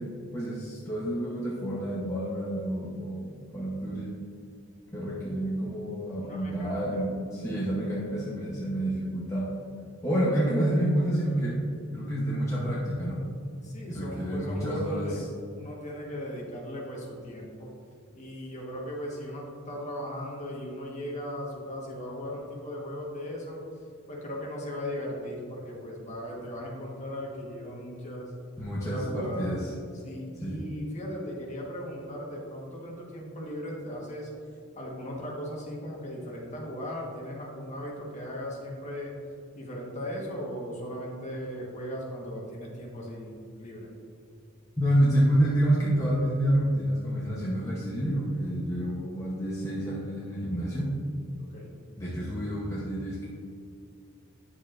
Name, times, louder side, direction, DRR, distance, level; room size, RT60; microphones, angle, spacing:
voice 1, 0.0-4.2 4.9-9.5 10.0-11.6 11.9-13.3 13.9-15.1 28.6-29.7 30.4-30.6 44.8-50.9 52.0-53.3, right 1 dB, 15° left, -7 dB, 0.9 m, -28 dB
voice 2, 6.2-7.0 13.6-15.3 15.6-17.7 18.1-23.6 24.1-28.3 28.8-29.6 30.0-34.3 34.7-39.1 39.5-43.9 51.4-51.7, equal, 35° left, -2 dB, 1.4 m, -37 dB
9.2 x 7.1 x 2.6 m, 2.4 s
head